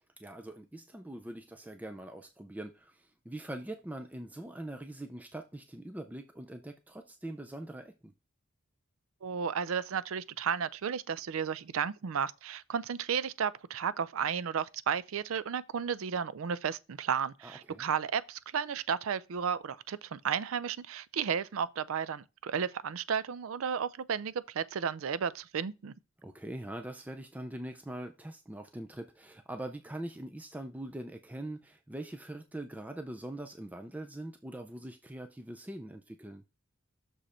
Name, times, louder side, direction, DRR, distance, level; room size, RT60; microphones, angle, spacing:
voice 1, 0.2-8.1 17.4-17.9 26.2-36.4, right 1 dB, 5° right, 0.4 m, -43 dB
voice 2, 9.2-25.9, right 7 dB, 80° right, 0.4 m, -33 dB
6.3 x 5.1 x 4.3 m
head